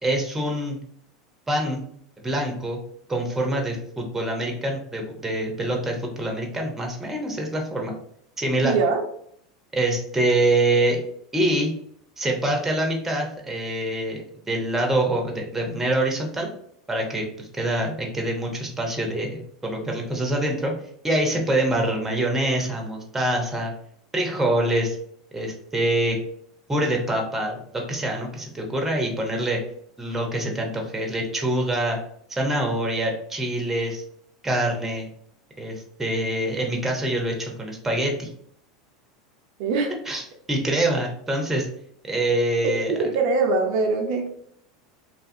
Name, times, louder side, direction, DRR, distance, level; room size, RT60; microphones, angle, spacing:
voice 1, 0.0-0.8 1.5-1.8 2.2-2.8 3.1-7.9 8.4-8.8 9.7-11.0 11.3-11.7 12.2-16.5 16.9-20.7 21.0-23.7 24.1-25.0 25.3-26.2 26.7-29.6 30.0-32.0 32.3-34.0 34.4-35.1 35.6-38.3 40.1-40.2 40.5-41.7 42.1-42.9, right 1 dB, 10° right, 1 dB, 0.7 m, -25 dB
voice 2, 8.6-9.0 39.6-39.9 42.6-42.7 43.0-44.3, right 4 dB, 60° right, 3 dB, 0.4 m, -22 dB
2.7 x 2.4 x 2.6 m, 0.66 s
hypercardioid pair, 90°, 3 cm